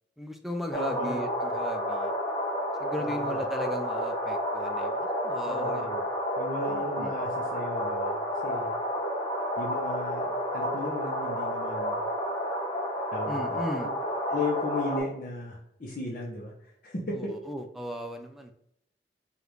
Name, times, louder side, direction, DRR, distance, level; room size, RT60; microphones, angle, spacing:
voice 1, 0.2-2.1 2.8-5.9 6.7-7.1 13.3-13.9 17.1-18.5, equal, ahead, 4 dB, 0.4 m, -36 dB
voice 2, 0.7-1.2 3.0-3.4 5.4-6.0 6.4-8.7 9.6-12.0 13.1-13.6 14.3-17.2, left 2 dB, 50° left, -4 dB, 0.7 m, -36 dB
sound 1, 0.7-15.0, equal, 20° left, 0.8 m, -30 dB
5.0 x 2.5 x 3.1 m, 0.75 s
head